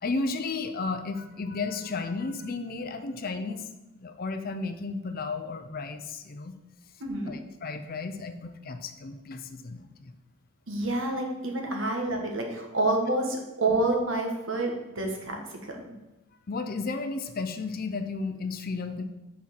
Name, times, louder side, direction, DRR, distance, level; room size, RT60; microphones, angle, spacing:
voice 1, 0.0-3.7 4.0-6.5 7.2-10.1 16.5-19.0, left 3 dB, 45° left, 8 dB, 0.5 m, -33 dB
voice 2, 7.0-7.3 10.7-15.4 15.6-15.8, right 2 dB, 60° right, 2 dB, 1.3 m, -28 dB
6.1 x 4.3 x 5.9 m, 1.0 s
head